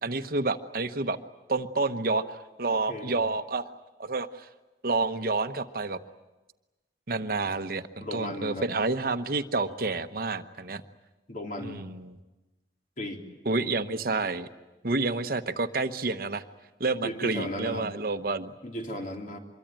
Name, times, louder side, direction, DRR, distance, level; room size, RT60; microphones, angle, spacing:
voice 1, 0.0-1.2 1.5-3.7 4.0-4.5 4.8-6.0 7.1-10.8 11.6-12.1 13.4-14.5 14.8-16.4 16.8-18.5, right 3 dB, 55° right, 9 dB, 1.0 m, -29 dB
voice 2, 2.7-3.2 8.0-8.7 11.3-11.9 13.0-13.2 17.0-17.9 18.6-19.4, left 1 dB, 50° left, 2 dB, 3.5 m, -35 dB
25.5 x 23.0 x 9.1 m, 1.1 s
head